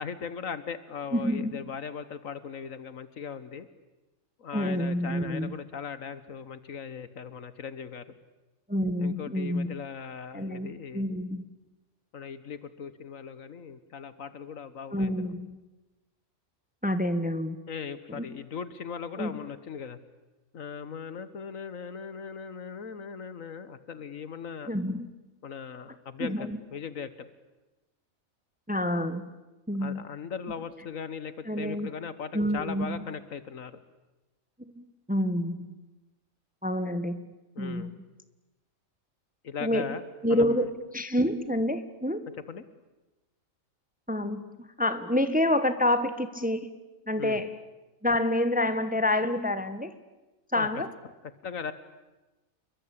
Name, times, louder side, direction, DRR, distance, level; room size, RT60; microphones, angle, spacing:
voice 1, 0.0-3.7 4.4-8.1 9.0-11.2 12.1-15.3 17.7-20.0 20.5-24.7 25.4-27.3 29.8-33.8 37.6-37.9 39.4-40.0 40.3-40.7 42.5-42.6 47.2-47.4 50.5-50.7 51.4-51.7, left 6 dB, 75° left, 13 dB, 1.6 m, -39 dB
voice 2, 1.1-1.6 4.5-5.5 8.7-9.7 10.3-11.4 14.9-15.6 16.8-17.6 18.1-18.4 19.2-19.3 24.7-25.1 26.2-26.6 28.7-29.2 29.7-30.0 31.4-31.9 32.3-33.0 34.6-35.7 36.6-37.2 37.6-38.0 39.6-40.0 40.2-40.7 40.9-42.2 44.1-46.7 47.1-47.5 48.0-49.9 50.5-50.9, left 1 dB, 5° right, 11 dB, 1.2 m, -28 dB
29.0 x 22.5 x 8.7 m, 1.1 s
omnidirectional pair, 1.4 m